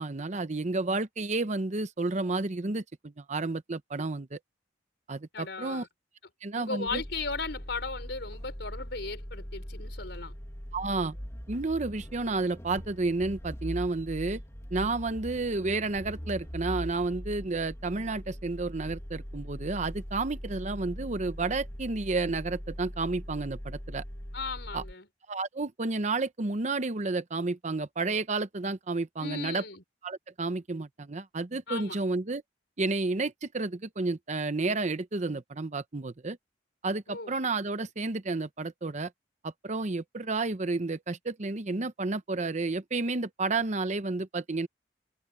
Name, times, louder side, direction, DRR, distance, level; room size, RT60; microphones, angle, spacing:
voice 1, 0.0-4.4 5.1-5.9 6.4-7.0 10.7-11.2 11.5-14.4 14.7-24.0 24.7-24.8 25.3-29.6 30.0-32.4 32.8-36.4 36.8-39.1 39.4-44.7, right 3 dB, 40° right, 0.8 m, -31 dB
voice 2, 5.3-5.9 6.5-10.3 24.3-25.1 29.2-29.8 31.7-32.0 37.1-37.4, left 4 dB, 65° left, 5.8 m, -36 dB
sound 1, 6.9-24.9, equal, 15° left, 1.9 m, -41 dB
head